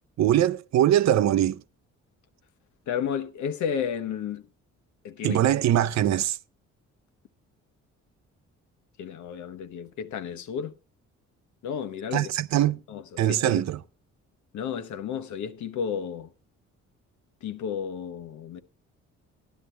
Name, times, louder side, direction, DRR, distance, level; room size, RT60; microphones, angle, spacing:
voice 1, 0.2-1.6 5.2-6.4 12.1-12.8 13.2-13.8, right 12 dB, 65° right, 0.6 m, -22 dB
voice 2, 2.9-4.4 5.0-5.4 9.0-10.7 11.6-12.3 12.9-13.6 14.5-16.3 17.4-18.6, left 7 dB, 75° left, 1.1 m, -32 dB
12.0 x 10.5 x 3.3 m
cardioid pair, 90°, 30 cm